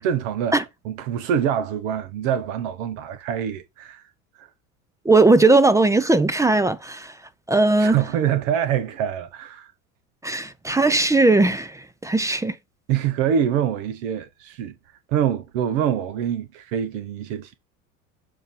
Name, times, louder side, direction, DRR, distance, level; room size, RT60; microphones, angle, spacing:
voice 1, 0.0-4.0 4.4-4.5 7.8-9.7 12.9-14.7 15.1-17.5, right 9 dB, 65° right, 0.9 m, -25 dB
voice 2, 5.1-7.1 7.5-8.0 10.2-12.5, right 2 dB, 10° right, 0.4 m, -18 dB
6.8 x 2.7 x 5.6 m
hypercardioid pair, 85°, 41 cm